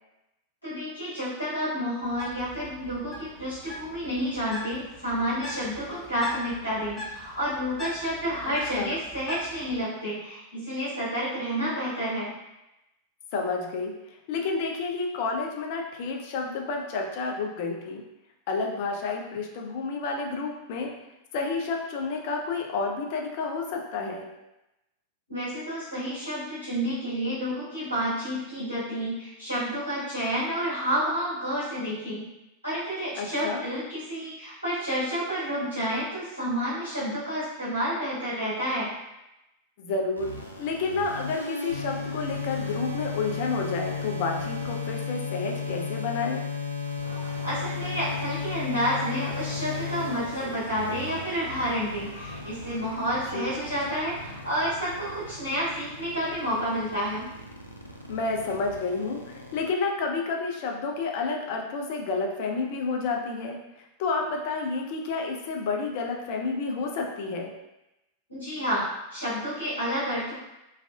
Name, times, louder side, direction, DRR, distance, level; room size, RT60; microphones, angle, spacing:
voice 1, 0.6-12.3 25.3-32.3 32.6-38.9 47.4-57.2 68.3-68.8 69.1-70.3, equal, 85° left, -11 dB, 1.4 m, -30 dB
Bird, 2.0-9.8, equal, 10° left, 0.7 m, -42 dB
voice 2, 8.5-8.9 13.3-13.9 14.3-18.0 18.5-20.9 21.3-24.3 33.2-33.7 39.8-40.3 40.6-46.4 53.3-53.5 58.1-63.6 64.0-67.5, left 4 dB, 50° left, 1 dB, 0.4 m, -30 dB
sound 1, 40.2-59.7, left 4 dB, 90° right, 0.4 m, -35 dB
sound 2, 47.0-55.3, equal, 60° right, 1.0 m, -45 dB
3.2 x 2.5 x 2.3 m, 0.93 s
figure-of-eight pair, 90°, 0 cm